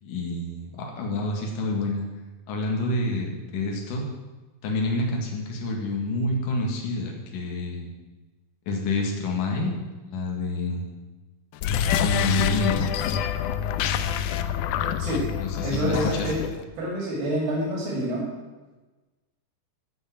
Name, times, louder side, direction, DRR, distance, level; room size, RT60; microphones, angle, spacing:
voice 1, 0.0-2.1 2.5-4.0 4.6-7.9 8.7-9.8 10.0-10.9 12.0-12.8 15.4-16.3, left 2 dB, 65° left, 0 dB, 3.4 m, -28 dB
sound 1, 11.5-16.6, left 8 dB, 85° left, 1.8 m, -26 dB
voice 2, 15.6-16.4 16.8-18.3, right 1 dB, 75° right, -3 dB, 4.3 m, -27 dB
13.5 x 5.6 x 8.6 m, 1.2 s
omnidirectional pair, 4.3 m